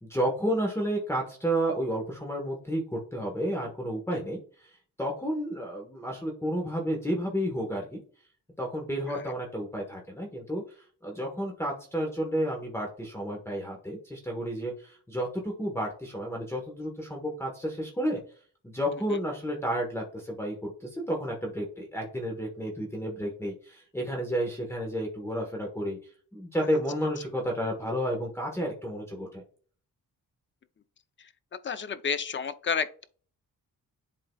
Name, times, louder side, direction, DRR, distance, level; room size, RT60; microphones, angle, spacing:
voice 1, 0.0-4.4 4.7-8.0 8.6-10.6 11.0-18.2 18.6-26.0 26.3-29.4, equal, 5° left, 1.1 m, -31 dB
voice 2, 31.6-33.0, left 6 dB, 35° left, 0.5 m, -30 dB
11.0 x 3.8 x 2.3 m
wide cardioid pair, 170°, 35 cm